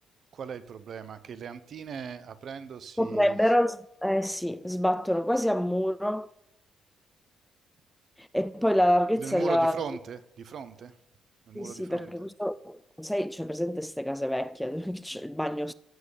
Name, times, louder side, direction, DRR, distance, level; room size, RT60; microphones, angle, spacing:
voice 1, 0.3-3.4 9.2-10.9 11.5-12.1 15.1-15.2, right 7 dB, 60° right, 1.2 m, -39 dB
voice 2, 3.0-6.3 8.2-9.8 11.5-15.7, equal, 5° left, 0.5 m, -27 dB
16.0 x 5.4 x 8.4 m
cardioid pair, 90°, 0 cm